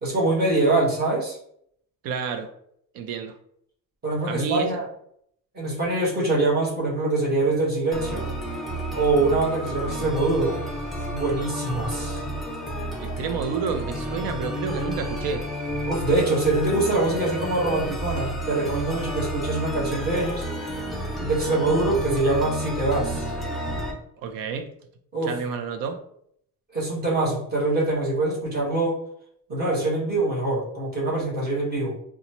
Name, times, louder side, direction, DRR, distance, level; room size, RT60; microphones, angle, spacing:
voice 1, 0.0-1.4 4.0-4.8 5.5-8.2 8.9-10.6 11.1-12.2 15.9-20.4 21.2-23.3 25.1-25.3 26.7-29.0 29.5-32.0, right 2 dB, 30° right, -5 dB, 1.4 m, -24 dB
voice 2, 2.0-2.5 2.9-3.3 4.3-4.7 13.0-15.4 24.2-24.7 25.2-26.0, right 6 dB, 85° right, 7 dB, 0.6 m, -29 dB
sound 1, 7.9-23.9, right 1 dB, ahead, 0.4 m, -31 dB
3.9 x 2.3 x 3.0 m, 0.69 s
cardioid pair, 160°, 34 cm